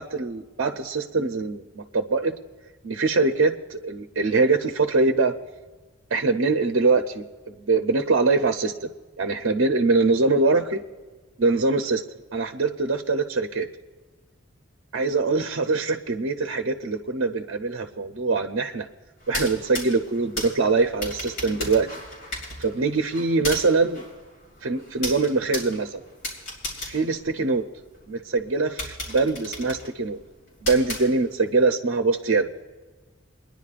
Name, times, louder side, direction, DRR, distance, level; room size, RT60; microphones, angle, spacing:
voice 1, 0.0-2.3 2.8-5.3 6.1-8.9 9.2-10.8 11.4-12.0 12.3-13.7 14.9-18.9 19.3-21.9 22.6-24.1 24.6-26.0 26.9-27.6 28.1-30.2 30.6-32.5, right 3 dB, 70° right, 4 dB, 0.6 m, -23 dB
sound 1, 19.2-28.0 28.4-28.5 28.8-31.6, left 1 dB, 65° left, 3.1 m, -36 dB
30.0 x 10.5 x 2.5 m, 1.3 s
head